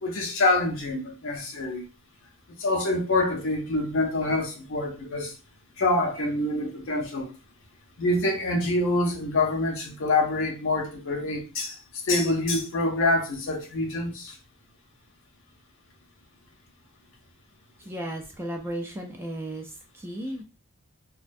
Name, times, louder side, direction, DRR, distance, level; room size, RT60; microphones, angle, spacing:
voice 1, 0.0-1.8 2.5-5.3 5.8-7.3 8.0-11.8 12.0-14.3, left 2 dB, 65° left, 0.6 m, -26 dB
voice 2, 17.9-20.4, right 1 dB, 10° right, 0.3 m, -35 dB
2.4 x 2.2 x 2.5 m
head